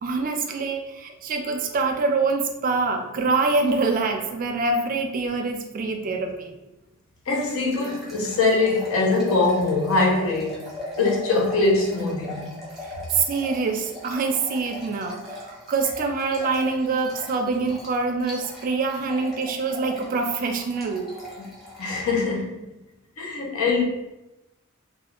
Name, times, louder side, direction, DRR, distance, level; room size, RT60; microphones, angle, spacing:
voice 1, 0.0-6.5 13.1-21.1, right 4 dB, 40° right, 4 dB, 0.3 m, -25 dB
voice 2, 7.3-10.6 11.0-12.5 21.4-21.5 21.8-22.6 23.2-23.8, left 3 dB, 80° left, -1 dB, 0.7 m, -22 dB
sound 1, 7.3-22.1, left 1 dB, ahead, 0.7 m, -39 dB
2.4 x 2.3 x 2.8 m, 0.97 s
head